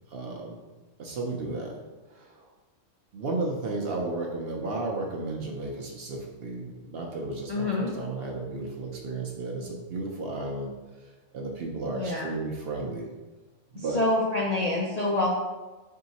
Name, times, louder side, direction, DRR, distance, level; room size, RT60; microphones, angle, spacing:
voice 1, 0.1-0.6 1.0-1.8 2.1-2.5 3.1-13.1 13.7-14.0, right 2 dB, 60° right, 1 dB, 0.7 m, -34 dB
voice 2, 7.5-7.9 12.0-12.3 13.9-15.4, left 2 dB, 55° left, -4 dB, 0.4 m, -26 dB
3.5 x 2.8 x 4.0 m, 1.2 s
omnidirectional pair, 1.3 m